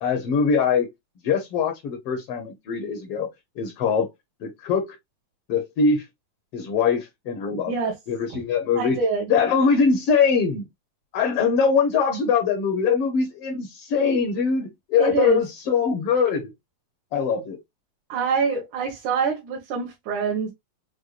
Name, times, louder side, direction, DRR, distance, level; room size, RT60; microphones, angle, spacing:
voice 1, 0.0-0.9 1.2-3.3 3.6-4.1 4.4-4.9 5.5-6.0 6.5-7.7 8.1-9.0 9.3-10.6 11.1-16.5 17.1-17.6, left 5 dB, 65° left, 1.6 m, -22 dB
voice 2, 8.8-9.3 15.0-15.5 18.1-20.5, right 4 dB, 80° right, 2.6 m, -25 dB
6.4 x 2.2 x 2.4 m
omnidirectional pair, 3.4 m